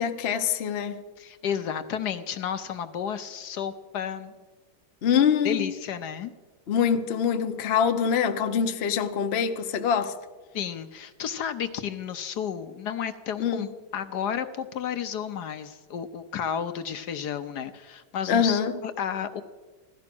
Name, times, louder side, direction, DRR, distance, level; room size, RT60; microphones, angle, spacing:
voice 1, 0.0-1.0 5.0-5.7 6.7-10.2 13.4-13.7 18.3-18.7, left 7 dB, 50° left, 0.8 m, -24 dB
voice 2, 1.2-4.3 5.4-6.3 10.5-19.4, left 8 dB, 65° left, 1.2 m, -32 dB
16.5 x 13.0 x 6.0 m
omnidirectional pair, 2.1 m